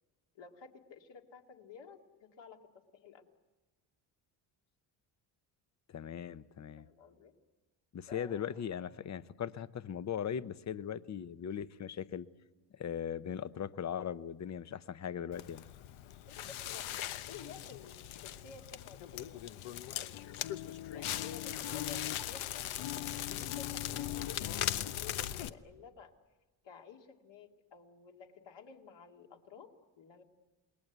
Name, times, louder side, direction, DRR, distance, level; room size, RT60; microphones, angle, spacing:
voice 1, 0.3-3.3 6.8-7.3 8.1-8.6 16.3-16.9 17.3-19.4 19.8-20.2 20.6-22.7 23.3-26.1 26.6-30.2, left 6 dB, 60° left, 3 dB, 2.5 m, -53 dB
voice 2, 5.9-6.9 7.9-12.3 12.7-15.7, left 8 dB, 35° left, 15 dB, 0.8 m, -39 dB
Crackle, 15.3-25.5, left 12 dB, 80° left, 1.0 m, -39 dB
28.0 x 20.5 x 8.1 m, 1.2 s
cardioid pair, 115°, 48 cm